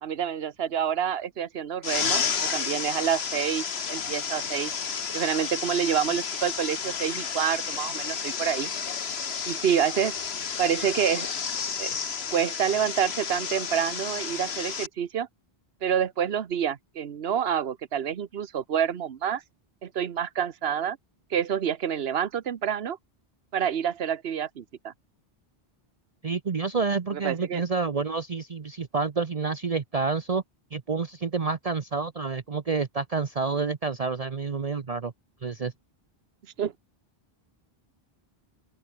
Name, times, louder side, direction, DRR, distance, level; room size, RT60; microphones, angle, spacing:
voice 1, 0.0-2.2 2.5-4.7 5.1-8.7 9.5-10.2 10.6-11.3 11.8-11.9 12.3-15.3 15.8-19.4 19.8-21.0 21.3-23.0 23.5-24.9 27.1-27.6 36.6-36.7, right 8 dB, 80° right, 1.2 m, -28 dB
sound 1, 1.8-14.9, left 6 dB, 85° left, 1.5 m, -31 dB
voice 2, 26.2-30.4 30.7-35.1 35.4-35.7, right 4 dB, 40° right, 0.9 m, -28 dB
open air
omnidirectional pair, 1.0 m